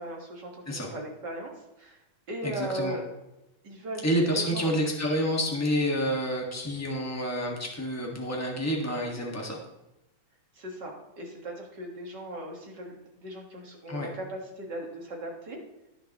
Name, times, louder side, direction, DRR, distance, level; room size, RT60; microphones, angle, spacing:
voice 1, 0.0-2.0 2.3-3.0 3.6-4.1 4.4-4.7 10.5-15.6, right 1 dB, 40° right, 0 dB, 1.8 m, -38 dB
voice 2, 2.4-3.0 4.0-9.6 13.9-14.1, equal, 20° left, -1 dB, 0.4 m, -28 dB
19.0 x 7.1 x 3.0 m, 0.93 s
omnidirectional pair, 3.7 m